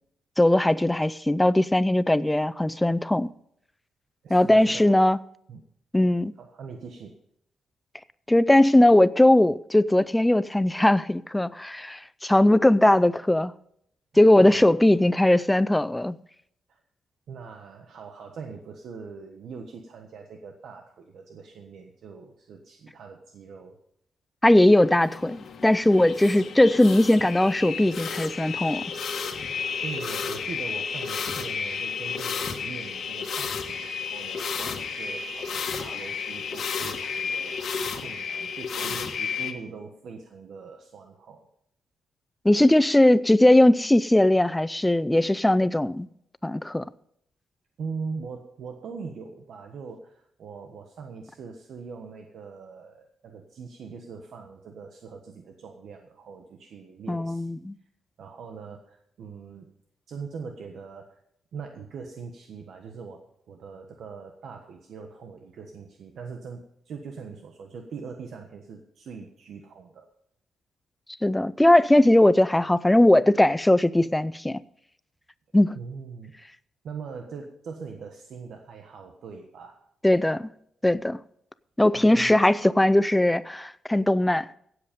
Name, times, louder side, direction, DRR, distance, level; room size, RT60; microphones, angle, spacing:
voice 1, 0.4-3.3 4.3-5.2 5.9-6.3 8.3-13.5 14.2-16.2 24.4-28.9 42.4-46.1 46.4-46.8 57.1-57.7 71.2-74.6 75.5-75.7 80.0-80.5 80.8-81.2 81.8-84.5, left 1 dB, 10° left, 0.4 m, -19 dB
voice 2, 4.2-5.0 5.5-5.6 6.4-7.2 14.4-14.7 16.7-16.8 17.3-23.8 29.8-41.5 47.8-57.5 58.2-59.7 60.1-61.2 61.5-70.1 75.7-76.3 76.8-79.8 81.9-82.3, right 5 dB, 65° right, 1.3 m, -41 dB
sound 1, 24.7-39.5, left 5 dB, 55° left, 1.6 m, -32 dB
16.5 x 7.9 x 5.2 m
cardioid pair, 135°, 0 cm